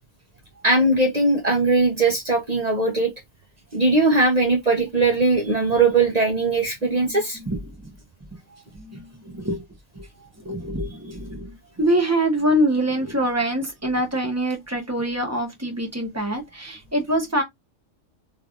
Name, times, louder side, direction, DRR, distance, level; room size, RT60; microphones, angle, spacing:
voice 1, 0.6-3.1 3.7-7.4, right 3 dB, 35° right, 0.7 m, -20 dB
voice 2, 6.8-7.9 8.5-9.6 9.9-17.4, right 1 dB, 15° right, 1.0 m, -25 dB
3.3 x 3.1 x 2.4 m
omnidirectional pair, 1.4 m